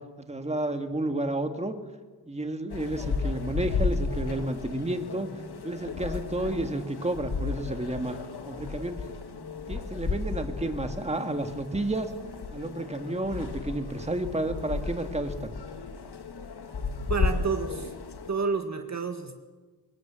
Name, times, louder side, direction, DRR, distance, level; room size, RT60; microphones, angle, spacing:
voice 1, 0.2-1.7 2.3-5.3 5.6-8.2 8.5-9.0 9.7-12.1 12.5-15.6, right 1 dB, 15° right, 6 dB, 1.9 m, -31 dB
sound 1, 2.7-18.3, left 4 dB, 70° left, 1.8 m, -34 dB
voice 2, 17.1-17.9 18.3-19.4, right 4 dB, 45° right, 6 dB, 1.7 m, -29 dB
23.5 x 21.0 x 7.6 m, 1.3 s
wide cardioid pair, 110°, 40 cm